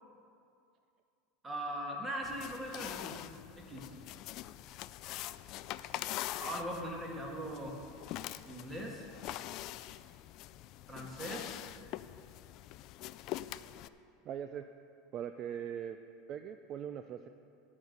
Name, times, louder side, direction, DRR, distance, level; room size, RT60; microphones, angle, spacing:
voice 1, 1.4-3.1 3.6-3.9 6.4-7.8 8.5-9.1 10.9-11.6, equal, 15° right, 0 dB, 1.9 m, -40 dB
sound 1, 2.2-13.9, left 14 dB, 55° left, 0.3 m, -44 dB
voice 2, 14.2-14.7 15.1-16.0 16.3-17.3, right 9 dB, 40° right, 9 dB, 0.4 m, -40 dB
11.0 x 5.4 x 8.0 m, 2.4 s
supercardioid pair, 115°, 0 cm